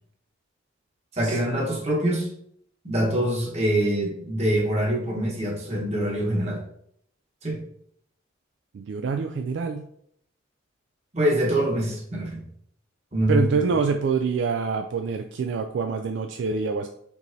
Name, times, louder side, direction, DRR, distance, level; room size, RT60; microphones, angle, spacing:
voice 1, 1.1-2.3 2.8-6.6 7.4-7.6 11.1-12.4 13.1-13.7, right 1 dB, 35° right, -2 dB, 1.2 m, -24 dB
voice 2, 8.7-9.8 13.3-16.9, right 5 dB, 65° right, 6 dB, 0.3 m, -26 dB
4.6 x 4.0 x 2.7 m, 0.68 s
head